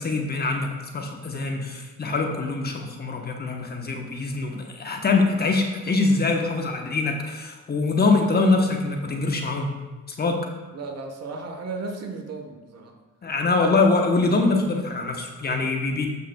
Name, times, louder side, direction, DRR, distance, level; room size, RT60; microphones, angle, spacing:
voice 1, 0.0-9.7 10.1-10.4 13.2-16.1, left 3 dB, 30° left, 2 dB, 1.0 m, -24 dB
voice 2, 10.7-13.0, right 3 dB, 55° right, 3 dB, 1.3 m, -35 dB
12.5 x 5.6 x 2.3 m, 1.2 s
cardioid pair, 90°, 30 cm